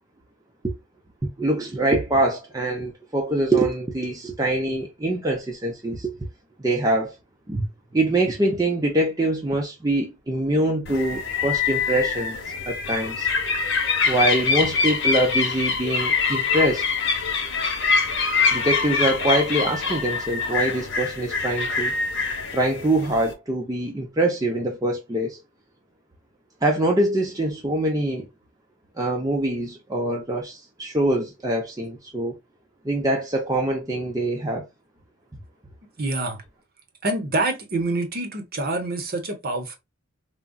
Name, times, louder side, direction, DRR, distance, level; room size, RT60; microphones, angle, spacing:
voice 1, 1.4-6.1 6.6-7.1 7.5-7.7 7.9-12.4 12.7-13.3 14.0-16.8 18.5-21.9 22.5-25.4 26.6-28.3 29.0-32.4 32.8-34.7, right 1 dB, 15° right, 0.5 m, -24 dB
sound 1, 10.9-23.3, left 5 dB, 55° left, 0.9 m, -24 dB
voice 2, 36.0-36.4 37.0-39.8, right 2 dB, 45° right, 0.8 m, -26 dB
3.7 x 2.1 x 2.2 m
head